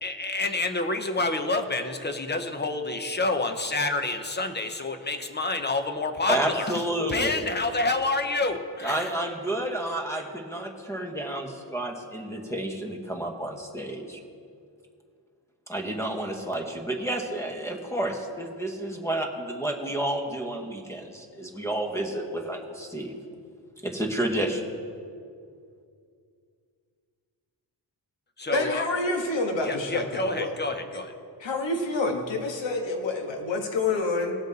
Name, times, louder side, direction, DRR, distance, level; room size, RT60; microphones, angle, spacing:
voice 1, 0.0-6.8 7.1-9.1 28.4-28.8 29.6-31.1, left 2 dB, 25° left, 7 dB, 0.7 m, -28 dB
voice 2, 6.3-7.4 8.8-14.2 15.7-23.2 23.8-24.7, right 1 dB, 5° left, 2 dB, 1.1 m, -30 dB
voice 3, 28.5-30.5 31.4-34.3, left 3 dB, 90° left, 3 dB, 1.5 m, -27 dB
18.5 x 8.0 x 4.0 m, 2.3 s
wide cardioid pair, 165°, 43 cm